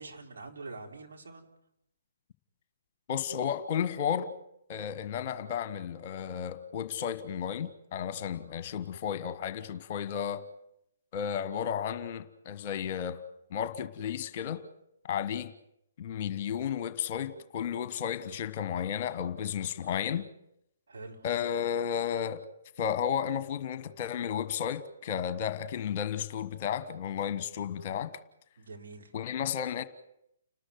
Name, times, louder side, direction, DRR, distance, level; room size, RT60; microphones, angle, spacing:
voice 1, 0.0-1.5 20.9-21.2 28.6-29.1, right 3 dB, 60° right, 4.1 m, -45 dB
voice 2, 3.1-4.3 4.7-10.5 11.1-13.2 13.5-14.7 15.0-15.5 16.0-20.3 21.2-22.4 22.8-28.1 29.1-29.8, left 8 dB, 35° left, 1.3 m, -33 dB
30.0 x 13.0 x 9.5 m
figure-of-eight pair, 130°, 0 cm